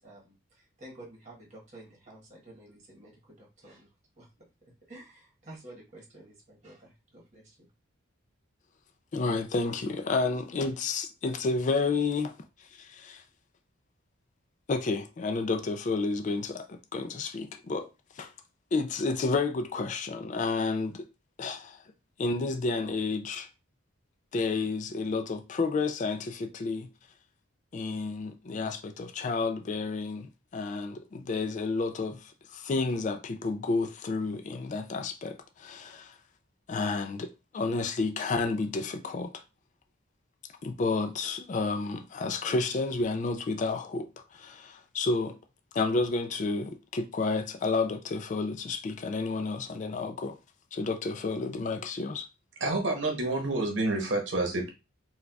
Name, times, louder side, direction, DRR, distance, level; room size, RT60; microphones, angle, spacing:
voice 1, 0.0-3.9 4.2-4.5 4.9-7.7, right 1 dB, 35° right, 1.2 m, -51 dB
voice 2, 9.1-12.3 12.7-13.2 14.7-17.9 18.2-18.3 18.7-21.0 21.4-21.8 22.2-23.5 24.3-26.9 27.7-36.1 36.7-39.3 40.6-45.4 45.7-50.4 50.7-52.3, left 3 dB, 35° left, 0.3 m, -31 dB
voice 3, 52.6-54.7, right 2 dB, 60° right, 0.9 m, -28 dB
4.1 x 2.3 x 2.3 m
head